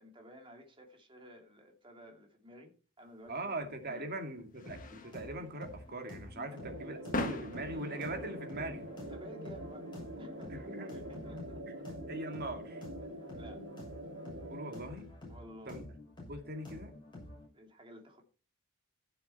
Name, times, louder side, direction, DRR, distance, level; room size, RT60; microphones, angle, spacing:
voice 1, 0.0-4.3 9.1-9.9 10.2-11.8 13.0-13.7 15.3-15.8 17.5-18.2, equal, 25° right, 2.7 m, -54 dB
sound 1, 3.2-14.5, left 2 dB, 40° left, 1.5 m, -46 dB
voice 2, 3.3-8.9 10.5-11.0 11.7-11.8 12.1-12.8 14.5-15.1 15.7-15.8 16.3-16.9, right 2 dB, 50° right, 2.2 m, -41 dB
sound 2, 4.6-17.5, left 2 dB, 20° left, 6.5 m, -50 dB
sound 3, 6.6-14.9, right 1 dB, 75° right, 2.7 m, -45 dB
15.5 x 6.9 x 4.3 m
head